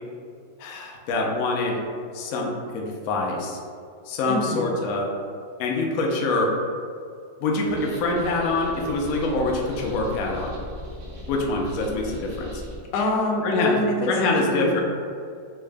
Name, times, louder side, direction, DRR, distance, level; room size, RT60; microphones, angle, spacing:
voice 1, 0.6-1.8 2.1-3.6 4.1-5.1 5.6-6.5 7.4-10.5 11.3-12.6 13.4-13.8 14.1-14.8, left 2 dB, 70° left, 0 dB, 0.8 m, -25 dB
voice 2, 4.3-4.7 12.9-14.8, left 1 dB, 90° left, 0 dB, 1.3 m, -25 dB
sound 1, 7.6-12.8, equal, 55° right, 0.9 m, -38 dB
4.5 x 2.0 x 3.3 m, 2.3 s
omnidirectional pair, 2.0 m